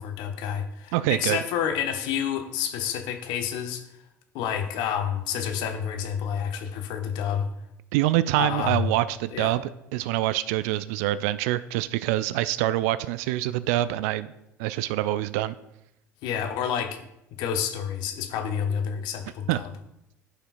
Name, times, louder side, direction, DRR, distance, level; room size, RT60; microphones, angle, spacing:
voice 1, 0.0-3.8 4.3-7.5 8.4-8.9 9.3-9.6 16.2-17.1 17.4-19.6, left 8 dB, 55° left, 6 dB, 1.0 m, -29 dB
voice 2, 0.9-1.4 7.9-14.3 14.6-15.5 19.5-19.6, right 15 dB, 60° right, 16 dB, 0.4 m, -25 dB
14.5 x 5.6 x 2.5 m, 0.83 s
figure-of-eight pair, 65°, 9 cm